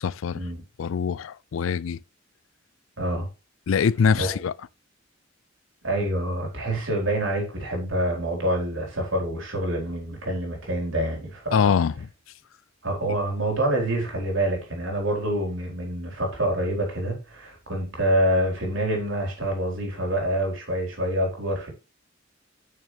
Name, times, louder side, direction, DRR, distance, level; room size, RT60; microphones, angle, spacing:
voice 1, 0.0-0.4 0.8-2.0 3.7-4.5 11.5-12.1, left 6 dB, 85° left, 0.4 m, -23 dB
voice 2, 3.0-3.3 4.2-4.4 5.8-11.7 12.8-21.7, right 1 dB, 80° right, 4.4 m, -26 dB
9.2 x 6.7 x 3.4 m
head